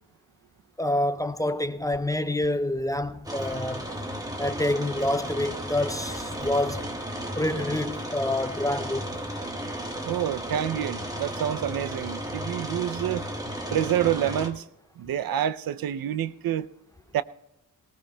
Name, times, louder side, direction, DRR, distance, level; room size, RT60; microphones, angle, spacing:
voice 1, 0.8-3.9 4.4-6.9 7.4-9.1, left 1 dB, 10° left, 0.4 m, -27 dB
sound 1, 3.3-14.5, equal, 10° right, 1.4 m, -34 dB
voice 2, 10.0-13.2 13.7-14.6 15.0-16.7 17.1-17.2, right 11 dB, 90° right, 0.5 m, -27 dB
19.5 x 19.0 x 2.2 m
wide cardioid pair, 105°, 34 cm